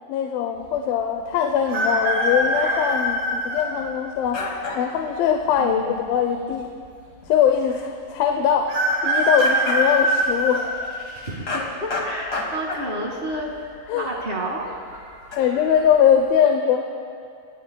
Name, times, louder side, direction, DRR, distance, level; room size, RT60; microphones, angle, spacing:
voice 1, 0.1-4.4 4.8-6.7 7.3-8.7 9.0-10.7 13.9-14.1 15.4-16.8, left 8 dB, 85° left, 4 dB, 2.6 m, -21 dB
sound 1, 1.7-3.7 4.4-4.5 5.6-6.2 6.5-6.6 6.8-6.9 8.7-11.3 11.8-12.2 13.4-13.7 14.0-14.1 14.6-15.0 15.4-15.6, right 1 dB, 90° right, 6.4 m, -23 dB
sound 2, 2.4-2.5 3.8-3.9 4.3-5.0 5.5-5.6 5.9-6.0 6.3-6.6 7.2-7.5 7.7-7.8 8.3-8.4 8.7-8.8 9.4-10.2 11.5-13.1 14.0-14.1 15.3-15.5, left 2 dB, 50° left, 1.0 m, -31 dB
voice 2, 5.6-5.9 11.3-13.5 13.9-14.6, right 1 dB, 30° right, -1 dB, 1.0 m, -30 dB
27.5 x 17.5 x 2.3 m, 2.4 s
omnidirectional pair, 4.0 m